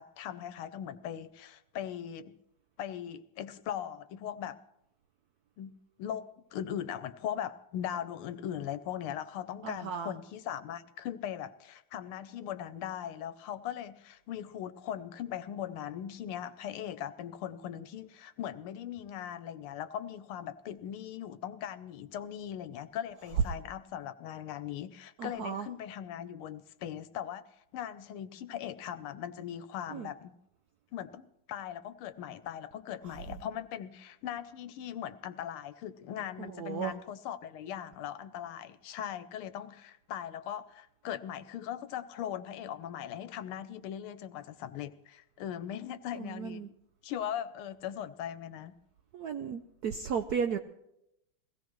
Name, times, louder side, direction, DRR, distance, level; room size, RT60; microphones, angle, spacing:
voice 1, 0.0-2.3 2.8-4.6 5.6-5.7 6.0-27.4 27.7-30.3 30.9-46.6 47.0-48.7, left 10 dB, 80° left, 13 dB, 1.7 m, -39 dB
voice 2, 9.6-10.1 25.2-25.7 29.9-30.1 33.0-33.1 36.4-36.9 46.1-46.7 49.1-50.6, right 7 dB, 75° right, 7 dB, 0.8 m, -35 dB
22.0 x 16.5 x 3.1 m, 0.83 s
omnidirectional pair, 2.4 m